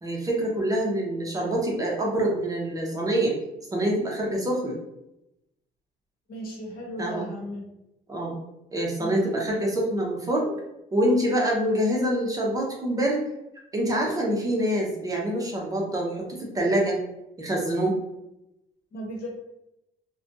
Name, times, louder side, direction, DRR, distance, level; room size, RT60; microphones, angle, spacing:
voice 1, 0.0-3.4 3.7-4.8 7.0-7.2 8.1-8.4 8.7-10.5 10.9-13.2 13.7-17.0 17.4-18.0, right 1 dB, 20° right, -2 dB, 0.6 m, -25 dB
voice 2, 6.3-7.7 9.0-9.1 18.9-19.3, equal, 60° left, -2 dB, 1.0 m, -36 dB
2.4 x 2.2 x 2.6 m, 0.87 s
cardioid pair, 110°, 17 cm